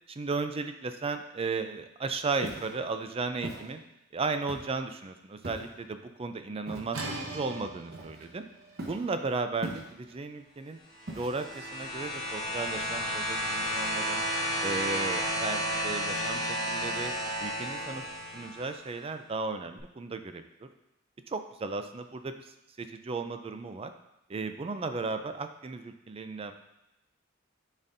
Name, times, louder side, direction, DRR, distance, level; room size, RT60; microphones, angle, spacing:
voice 1, 0.1-3.8 4.1-7.0 7.3-8.4 8.9-10.8 11.2-14.2 14.6-17.1 17.4-18.0 18.3-20.4 21.3-22.5 22.8-23.9 24.3-26.5, right 4 dB, 30° right, 8 dB, 0.4 m, -35 dB
Walk footsteps, 2.4-2.7 3.4-3.7 4.5-4.8 5.4-5.8 6.7-7.0 7.9-8.4 8.8-9.1 9.6-10.1 11.1-11.6, right 1 dB, 50° right, 1.0 m, -40 dB
sound 1, 6.9-12.6, right 2 dB, 90° right, 0.9 m, -43 dB
sound 2, 11.0-18.7 19.8-19.9, equal, 30° left, 2.2 m, -32 dB
10.5 x 4.2 x 2.6 m, 0.91 s
head